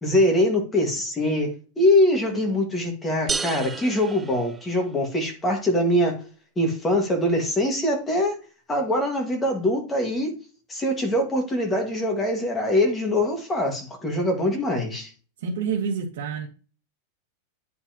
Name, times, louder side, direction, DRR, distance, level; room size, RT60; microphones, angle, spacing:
voice 1, 0.0-6.2 6.6-8.4 8.7-10.3 10.7-15.1, left 1 dB, 10° left, 1.8 m, -23 dB
sound 1, 3.3-5.1, right 5 dB, 15° right, 0.3 m, -32 dB
voice 2, 15.4-16.5, right 6 dB, 70° right, 1.6 m, -28 dB
9.8 x 5.2 x 2.9 m
supercardioid pair, 170°, 0 cm